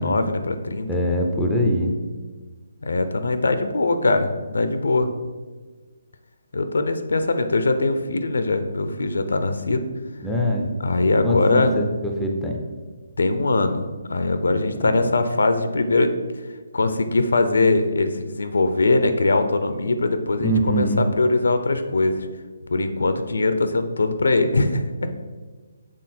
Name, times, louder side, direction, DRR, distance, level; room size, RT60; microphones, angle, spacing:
voice 1, 0.0-0.9 2.8-5.1 6.5-9.8 10.8-11.7 13.2-16.1 16.7-20.9 21.1-22.3 22.7-25.1, left 2 dB, 90° left, 9 dB, 0.6 m, -21 dB
voice 2, 0.9-1.9 10.2-10.7 11.2-11.9 12.2-12.6 14.8-15.1 20.4-21.0, equal, 5° left, 0 dB, 0.4 m, -23 dB
6.3 x 3.8 x 4.3 m, 1.4 s
hypercardioid pair, 175°, 0 cm